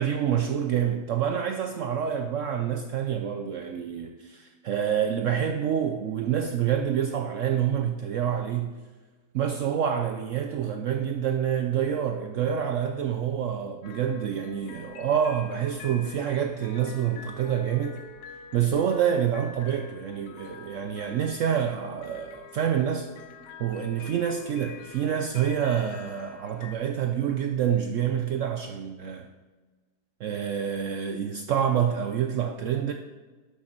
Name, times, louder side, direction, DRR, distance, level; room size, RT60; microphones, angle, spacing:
voice 1, 0.0-8.8 9.3-18.0 18.5-23.1 23.6-29.3 30.2-32.9, right 9 dB, 85° right, 0.6 m, -27 dB
sound 1, 13.8-26.8, left 6 dB, 75° left, 1.2 m, -46 dB
11.5 x 6.5 x 4.4 m
omnidirectional pair, 1.9 m